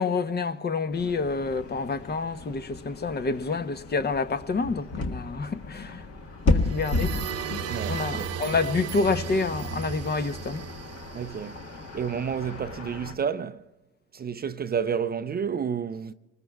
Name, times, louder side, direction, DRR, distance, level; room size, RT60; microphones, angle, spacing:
voice 1, 0.0-6.1 6.4-7.1 7.5-10.7, left 4 dB, 30° left, 0.8 m, -28 dB
sound 1, 0.9-13.2, left 2 dB, 50° left, 1.6 m, -33 dB
sound 2, 6.5-12.2, right 7 dB, 55° right, 0.9 m, -35 dB
voice 2, 7.7-8.3 11.1-11.6 11.9-13.6 14.1-16.1, right 7 dB, 30° right, 0.5 m, -30 dB
25.5 x 20.0 x 2.3 m
supercardioid pair, 70°, 31 cm